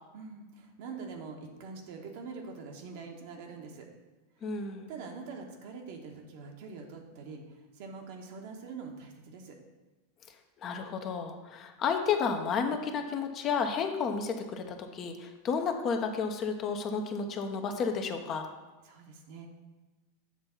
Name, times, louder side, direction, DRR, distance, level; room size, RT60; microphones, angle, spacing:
voice 1, 0.1-3.9 4.4-4.5 4.9-9.6 18.8-19.5, right 4 dB, 65° right, 2 dB, 1.2 m, -44 dB
voice 2, 4.4-4.9 10.6-18.5, left 5 dB, 40° left, 5 dB, 0.8 m, -32 dB
7.4 x 3.5 x 5.7 m, 1.2 s
hypercardioid pair, 105°, 0 cm